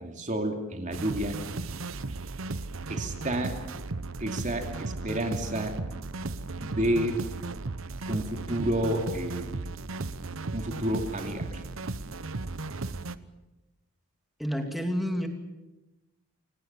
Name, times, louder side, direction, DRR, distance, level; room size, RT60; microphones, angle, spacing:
voice 1, 0.0-1.4 2.9-3.6 4.2-5.8 6.6-7.2 8.1-9.6 10.5-11.6, right 1 dB, 35° right, 4 dB, 2.7 m, -30 dB
sound 1, 0.9-13.1, right 3 dB, 65° right, 0.9 m, -35 dB
voice 2, 14.4-15.3, equal, ahead, 4 dB, 2.6 m, -29 dB
28.5 x 18.5 x 7.3 m, 1.0 s
head